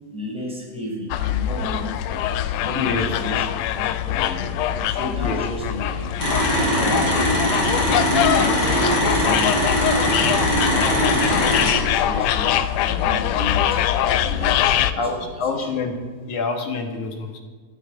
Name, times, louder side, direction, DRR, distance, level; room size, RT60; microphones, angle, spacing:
voice 1, 0.1-2.2 2.6-4.5 4.9-6.1 6.5-12.5 12.8-13.8 14.1-15.7, equal, ahead, -4 dB, 5.0 m, -32 dB
sound 1, 1.1-14.9, left 11 dB, 80° left, 1.9 m, -23 dB
voice 2, 2.8-3.1 5.2-5.4 15.0-15.9 16.3-17.4, left 4 dB, 60° left, 4 dB, 3.0 m, -26 dB
sound 2, 6.2-11.7, equal, 35° left, 5.9 m, -21 dB
12.5 x 9.5 x 9.3 m, 1.4 s
omnidirectional pair, 4.1 m